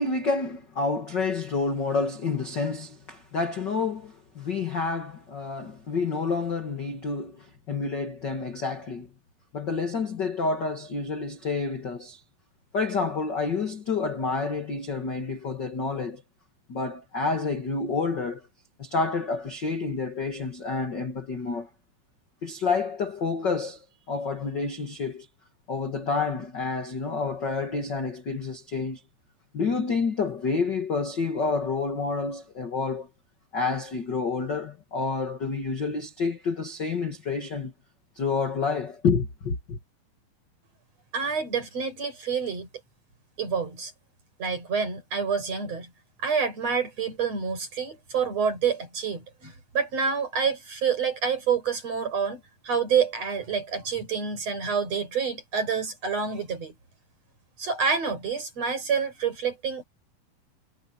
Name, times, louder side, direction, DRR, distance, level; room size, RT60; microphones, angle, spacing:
voice 1, 0.0-9.1 9.5-12.2 12.7-16.2 16.7-18.5 18.8-21.7 22.4-25.3 25.7-29.0 29.5-33.1 33.5-37.7 38.1-39.8, left 4 dB, 40° left, 1.6 m, -29 dB
voice 2, 41.1-42.7 43.4-43.9 44.4-45.9 46.2-56.7 57.6-59.8, right 6 dB, 40° right, 6.9 m, -28 dB
omnidirectional pair, 4.5 m